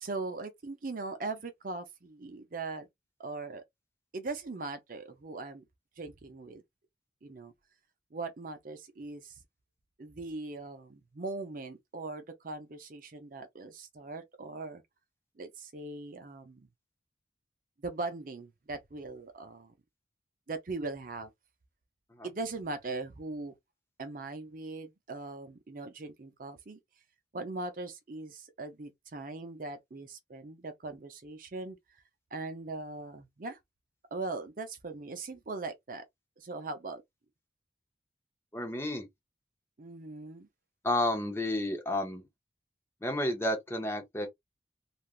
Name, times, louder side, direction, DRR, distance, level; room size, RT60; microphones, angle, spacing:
voice 1, 0.0-2.9 3.2-3.6 4.1-5.6 6.0-6.6 7.2-7.5 8.1-9.3 10.0-14.8 15.4-16.7 17.8-19.7 20.5-21.3 22.2-23.5 24.0-26.8 27.3-31.8 32.3-33.6 34.1-36.0 36.4-37.0 39.8-40.5, right 3 dB, 50° right, 0.6 m, -40 dB
voice 2, 38.5-39.1 40.8-42.2 43.0-44.3, left 1 dB, 15° left, 0.8 m, -31 dB
3.3 x 2.4 x 2.4 m
head